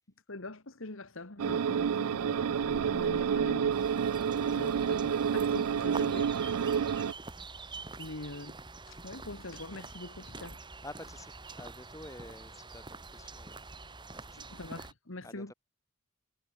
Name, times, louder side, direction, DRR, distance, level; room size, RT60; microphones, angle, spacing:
voice 1, 0.3-3.8 4.3-6.9 8.0-8.6 8.9-10.6 14.4-15.5, left 2 dB, 65° left, 1.9 m, -44 dB
sound 1, 1.4-7.1, right 7 dB, 85° right, 0.4 m, -29 dB
sound 2, 3.7-14.9, right 3 dB, 20° right, 2.6 m, -46 dB
voice 2, 10.8-13.6 14.1-14.5 15.2-15.5, left 1 dB, 15° left, 7.5 m, -49 dB
head